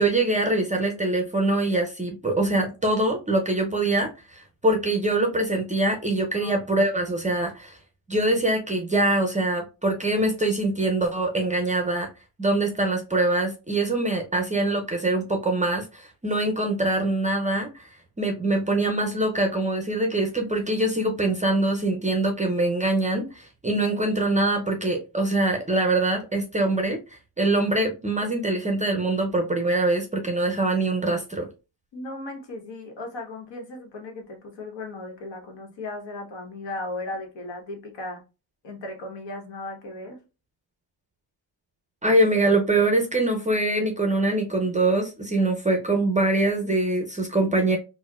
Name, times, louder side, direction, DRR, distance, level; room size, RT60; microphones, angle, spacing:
voice 1, 0.0-7.8 8.1-12.1 12.4-17.9 18.2-31.5 42.0-47.8, right 2 dB, 15° right, 0.5 m, -24 dB
voice 2, 31.9-38.2 38.6-40.2, left 2 dB, 65° left, 1.1 m, -36 dB
4.2 x 2.1 x 2.3 m
cardioid pair, 115°, 47 cm